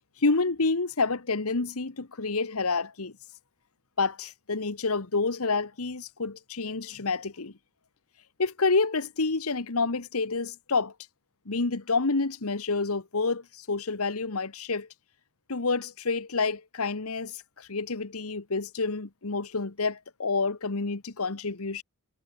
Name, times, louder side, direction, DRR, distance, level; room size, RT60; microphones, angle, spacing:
voice 1, 0.2-3.1 4.0-7.5 8.4-10.9 11.5-14.9 15.5-21.8, left 3 dB, 85° left, 1.4 m, -28 dB
head